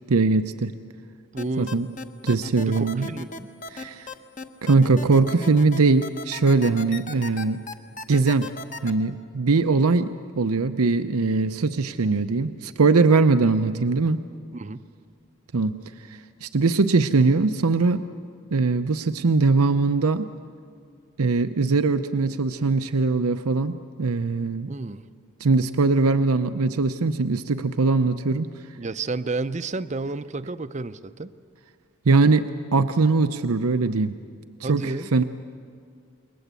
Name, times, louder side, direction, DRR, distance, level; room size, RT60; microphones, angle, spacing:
voice 1, 0.1-0.7 1.6-1.9 2.2-3.1 3.7-4.1 4.6-7.6 8.1-8.5 8.8-14.2 15.5-15.8 16.1-18.0 18.5-20.3 21.2-24.7 25.4-28.5 32.1-32.5 32.7-34.2 34.6-35.2, right 3 dB, 85° right, 9 dB, 0.7 m, -21 dB
voice 2, 1.3-1.7 2.6-3.5 14.5-14.8 24.7-25.0 28.8-31.3 34.6-35.1, right 3 dB, 30° right, 12 dB, 0.6 m, -31 dB
sound 1, 1.4-8.9, left 3 dB, 35° left, 1.0 m, -36 dB
28.5 x 22.0 x 8.3 m, 2.2 s
head